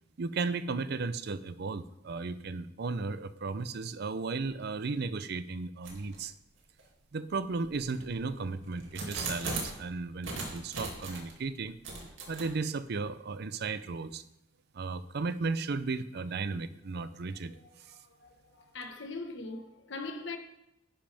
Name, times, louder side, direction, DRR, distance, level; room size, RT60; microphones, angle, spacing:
voice 1, 0.2-6.3 7.1-11.8 12.3-14.2 14.7-17.5 17.8-18.0, right 4 dB, 60° right, 0.5 m, -35 dB
sound 1, 5.8-6.2 6.8-6.9 7.6-9.8 10.2-11.3 11.8-12.4, right 3 dB, 80° right, 2.5 m, -39 dB
voice 2, 17.9-18.3 18.7-20.4, left 3 dB, 70° left, 1.4 m, -41 dB
10.5 x 10.0 x 3.5 m
head